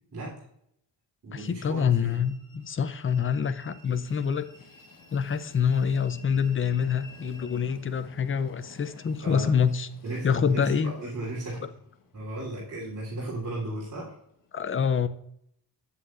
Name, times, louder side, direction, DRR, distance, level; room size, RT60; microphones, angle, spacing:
voice 1, 0.1-0.4 1.2-2.2 9.2-9.5 10.0-11.6 12.1-14.2, right 1 dB, 50° right, -9 dB, 3.3 m, -35 dB
voice 2, 1.3-4.5 5.1-9.9 10.2-10.9 14.5-15.1, left 7 dB, 30° left, 13 dB, 0.6 m, -26 dB
Train, 2.1-14.5, left 3 dB, 50° left, 1.2 m, -53 dB
8.5 x 7.8 x 2.5 m, 0.73 s
cardioid pair, 90°, 41 cm